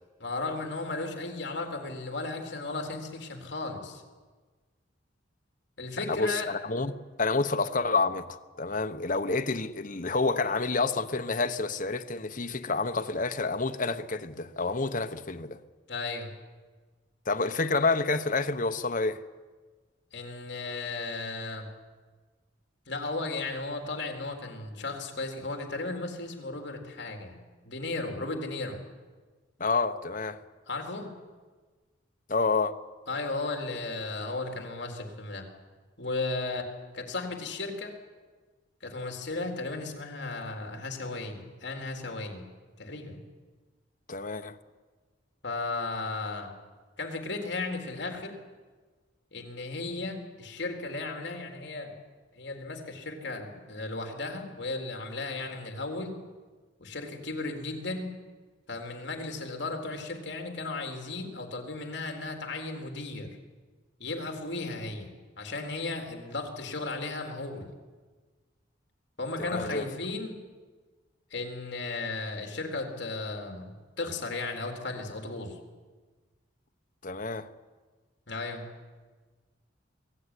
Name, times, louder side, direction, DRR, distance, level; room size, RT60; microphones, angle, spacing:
voice 1, 0.2-4.0 5.8-6.5 15.9-16.3 20.1-21.7 22.9-27.4 27.6-28.8 30.7-31.1 33.1-35.5 36.0-36.7 36.9-37.9 38.8-42.4 42.8-43.2 45.4-46.5 47.0-48.3 49.3-51.9 52.4-56.1 56.8-58.1 58.7-63.3 64.0-65.1 65.4-67.7 69.2-70.4 71.3-73.7 74.0-75.6 78.3-78.7, left 3 dB, 60° left, 3.9 m, -35 dB
voice 2, 6.0-15.6 17.3-19.2 29.6-30.4 32.3-32.7 44.1-44.6 69.4-69.8 77.0-77.5, left 3 dB, 45° left, 1.1 m, -29 dB
23.0 x 16.5 x 10.0 m
head